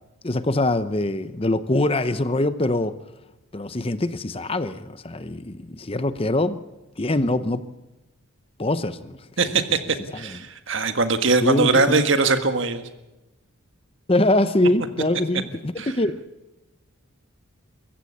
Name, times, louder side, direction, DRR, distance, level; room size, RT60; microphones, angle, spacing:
voice 1, 0.2-2.9 3.5-6.6 7.0-7.6 8.6-9.2 11.4-12.0 14.1-16.2, left 1 dB, 25° left, 12 dB, 0.7 m, -23 dB
voice 2, 9.4-9.8 10.1-12.8 15.8-15.9, right 3 dB, 55° right, 8 dB, 1.6 m, -21 dB
23.5 x 15.0 x 8.5 m, 1.0 s
head